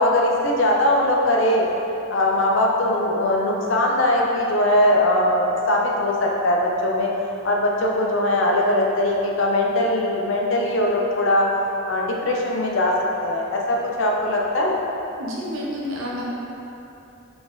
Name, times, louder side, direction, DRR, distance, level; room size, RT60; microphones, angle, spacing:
voice 1, 0.0-1.6 2.1-7.1 7.4-11.5 11.9-12.9 13.2-14.8, left 1 dB, 60° left, -2 dB, 0.6 m, -20 dB
voice 2, 15.2-16.2, equal, 75° right, -5 dB, 0.9 m, -29 dB
4.0 x 3.4 x 3.9 m, 2.9 s
head